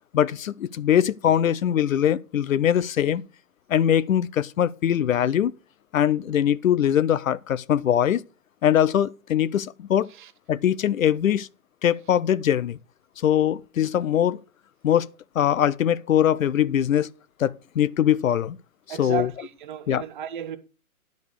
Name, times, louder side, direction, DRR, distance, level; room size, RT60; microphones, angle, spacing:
voice 1, 0.1-3.2 3.7-5.5 5.9-8.2 8.6-10.1 10.5-11.5 11.8-12.8 13.2-14.4 14.8-15.1 15.3-17.1 17.4-18.6 18.9-19.3 19.9-20.0, left 10 dB, 65° left, 0.6 m, -22 dB
voice 2, 18.9-20.6, right 10 dB, 35° right, 0.9 m, -34 dB
10.5 x 5.3 x 6.6 m
hypercardioid pair, 145°, 44 cm